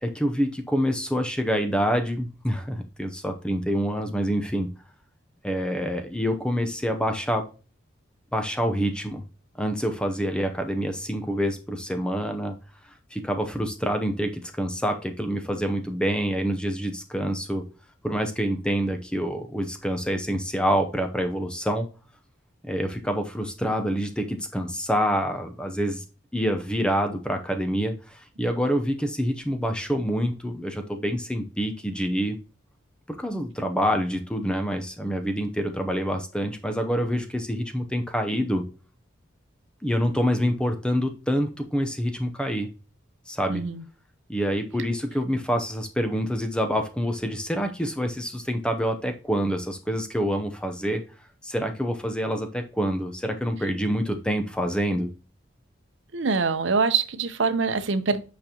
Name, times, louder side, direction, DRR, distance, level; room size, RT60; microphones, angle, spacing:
voice 1, 0.0-4.7 5.4-7.5 8.3-9.2 9.6-12.6 13.1-17.6 18.0-21.9 22.6-26.0 26.3-32.4 33.1-38.6 39.8-42.7 43.3-43.6 44.3-51.0 51.4-55.1, equal, 5° left, 5 dB, 0.6 m, -26 dB
voice 2, 43.5-43.8 56.1-58.2, right 4 dB, 70° right, 10 dB, 0.7 m, -24 dB
8.4 x 5.1 x 2.9 m, 0.34 s
head